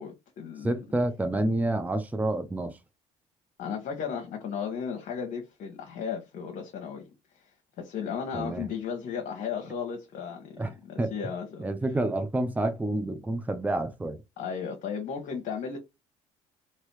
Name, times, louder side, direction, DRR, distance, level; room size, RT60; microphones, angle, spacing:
voice 1, 0.0-0.8 3.6-7.0 7.4-7.5 7.8-11.6 14.4-15.8, left 7 dB, 60° left, 1.0 m, -35 dB
voice 2, 0.6-2.8 8.3-8.7 10.6-11.1 11.6-14.2, right 1 dB, 10° right, 0.7 m, -29 dB
3.0 x 2.9 x 3.1 m
hypercardioid pair, 60°, 16 cm